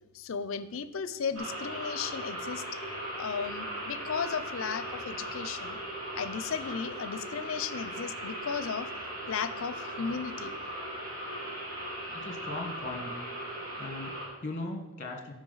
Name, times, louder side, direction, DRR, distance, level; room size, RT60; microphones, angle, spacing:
voice 1, 0.1-2.6 3.1-5.8 6.1-8.9 9.3-10.6, left 6 dB, 65° left, 13 dB, 0.5 m, -35 dB
sound 1, 1.3-14.3, right 1 dB, 80° right, 3.5 m, -38 dB
voice 2, 12.1-13.2 13.8-15.3, left 2 dB, 35° left, 3 dB, 1.3 m, -38 dB
13.0 x 5.2 x 4.0 m, 1.0 s
head